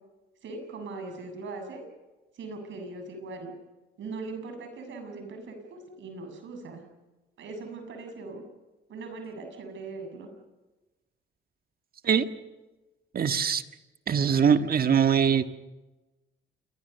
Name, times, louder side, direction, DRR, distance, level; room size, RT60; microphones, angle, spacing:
voice 1, 0.4-1.8 2.4-3.5 4.0-6.8 7.4-8.4 8.9-10.3, right 3 dB, 70° right, 6 dB, 7.3 m, -40 dB
voice 2, 13.1-13.6 14.1-15.4, right 7 dB, 50° right, 9 dB, 1.6 m, -22 dB
28.0 x 22.0 x 6.9 m, 1.1 s
cardioid pair, 90°, 20 cm